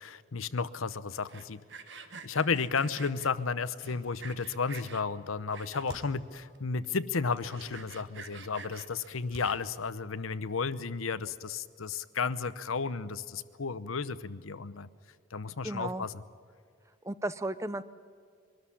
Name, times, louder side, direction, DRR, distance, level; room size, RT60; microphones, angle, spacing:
voice 1, 0.0-1.6 2.2-14.9 15.3-16.1, left 5 dB, 85° left, 15 dB, 0.9 m, -33 dB
Sawing, 1.2-3.3 3.8-5.0 5.5-6.1 6.5-6.6 6.8-6.9 7.3-9.8, right 5 dB, 60° right, 1.4 m, -48 dB
sound 1, 3.5-4.7 5.0-5.1 5.3-6.9 7.3-11.0 11.3-11.4, right 1 dB, 90° right, 4.4 m, -54 dB
voice 2, 15.6-16.1 17.0-17.8, right 1 dB, 15° right, 14 dB, 0.6 m, -34 dB
23.0 x 13.0 x 9.9 m, 2.2 s
head